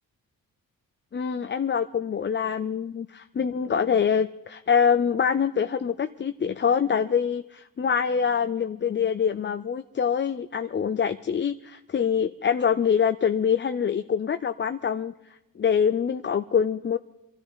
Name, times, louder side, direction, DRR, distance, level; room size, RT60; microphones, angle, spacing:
voice 1, 1.1-15.1 15.6-17.0, left 7 dB, 30° left, 9 dB, 0.5 m, -25 dB
24.0 x 13.0 x 4.1 m, 0.91 s
cardioid pair, 100°, 35 cm